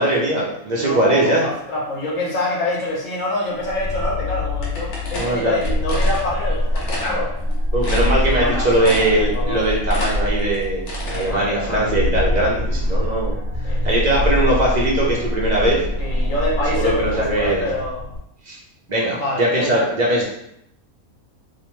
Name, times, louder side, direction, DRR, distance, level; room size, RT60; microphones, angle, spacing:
voice 1, 0.0-1.4 5.1-5.6 7.7-10.8 11.1-13.4 13.8-15.8 16.7-17.7 18.5-18.6 18.9-20.2, right 1 dB, 55° right, -4 dB, 0.5 m, -20 dB
voice 2, 0.7-7.3 8.0-9.7 11.0-12.1 13.6-14.3 16.0-18.1 19.2-19.9, left 1 dB, 65° left, -4 dB, 1.2 m, -26 dB
sound 1, 3.6-18.2, left 1 dB, 80° right, 1.3 m, -24 dB
sound 2, 4.6-6.2 6.7-7.1 7.5-7.6 7.8-8.5 8.8-9.3 9.6-11.3, left 2 dB, 85° left, 1.3 m, -30 dB
3.1 x 2.1 x 3.0 m, 0.75 s
omnidirectional pair, 1.6 m